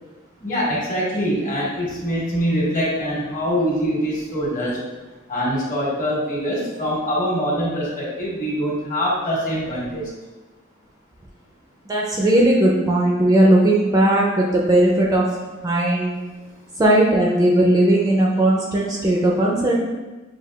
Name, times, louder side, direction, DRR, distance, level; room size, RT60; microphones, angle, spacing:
voice 1, 0.4-4.8 5.3-10.1, equal, 40° left, -5 dB, 1.4 m, -24 dB
voice 2, 11.9-15.3 15.6-16.2 16.8-19.7, right 1 dB, 20° right, -2 dB, 0.4 m, -17 dB
6.6 x 2.6 x 2.3 m, 1.2 s
head